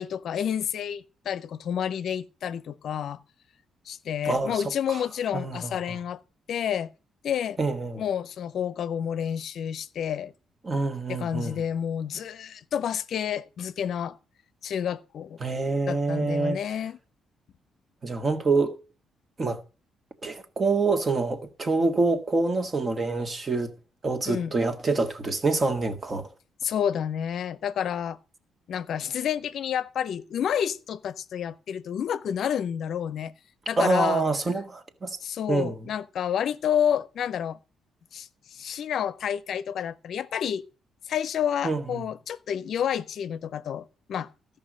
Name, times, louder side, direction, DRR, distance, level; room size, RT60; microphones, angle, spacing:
voice 1, 0.0-3.2 3.9-6.2 6.5-6.9 7.2-7.6 8.0-10.3 11.1-14.2 14.6-15.4 15.9-17.0 24.3-24.5 26.6-28.2 28.7-33.3 33.7-34.3 35.2-37.6 38.1-40.6 41.1-44.3, left 9 dB, 65° left, 0.6 m, -29 dB
voice 2, 4.2-4.6 4.9-5.0 5.3-5.9 7.6-8.0 10.6-11.6 15.4-16.6 18.0-18.7 19.4-19.6 20.2-23.7 24.0-26.3 33.8-35.2 35.5-35.7 41.6-42.0, right 3 dB, 35° right, 1.7 m, -26 dB
13.0 x 5.6 x 6.3 m
cardioid pair, 90°, 0 cm